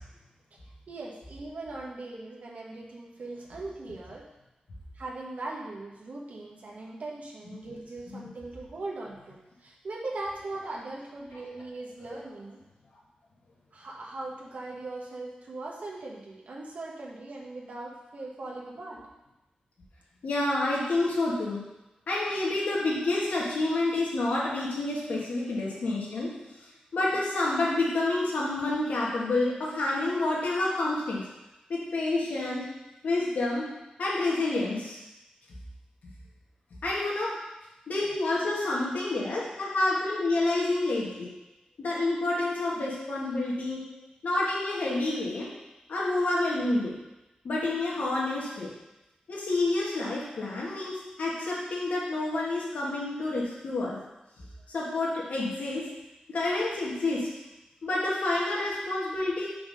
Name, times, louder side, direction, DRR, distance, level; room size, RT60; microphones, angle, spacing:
voice 1, 0.9-4.3 4.9-12.6 13.7-19.1 24.5-24.6 25.0-25.2 37.3-37.4, right 2 dB, 70° right, -3 dB, 1.3 m, -40 dB
voice 2, 20.2-21.6 22.1-26.3 26.9-31.2 31.7-32.6 33.0-33.7 34.0-35.0 36.8-37.3 37.9-41.3 41.8-43.8 44.2-45.5 45.9-46.9 47.4-48.7 49.3-54.0 54.7-55.8 56.3-57.3 57.8-59.5, left 2 dB, 85° left, -5 dB, 1.9 m, -28 dB
5.6 x 4.1 x 5.4 m, 0.96 s
wide cardioid pair, 115°, 3 cm